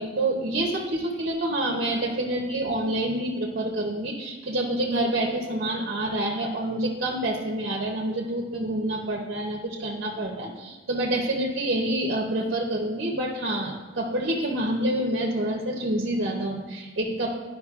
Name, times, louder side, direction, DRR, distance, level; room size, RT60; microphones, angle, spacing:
voice 1, 0.0-17.3, right 1 dB, 50° right, -1 dB, 0.8 m, -27 dB
11.0 x 5.2 x 2.4 m, 1.4 s
head